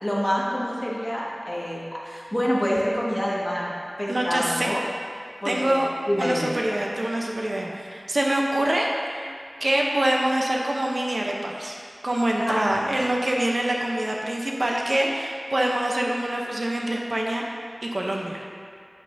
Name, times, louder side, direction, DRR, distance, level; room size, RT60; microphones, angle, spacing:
voice 1, 0.0-3.7 4.0-4.8 5.4-5.8 6.1-6.5 12.4-12.6, equal, 25° left, -6 dB, 1.7 m, -26 dB
voice 2, 4.1-4.7 5.4-5.9 6.2-9.3 9.6-11.8 12.0-17.4 17.8-18.4, right 1 dB, 70° right, -1 dB, 0.8 m, -25 dB
8.8 x 7.8 x 2.7 m, 2.3 s
wide cardioid pair, 55°, 0 cm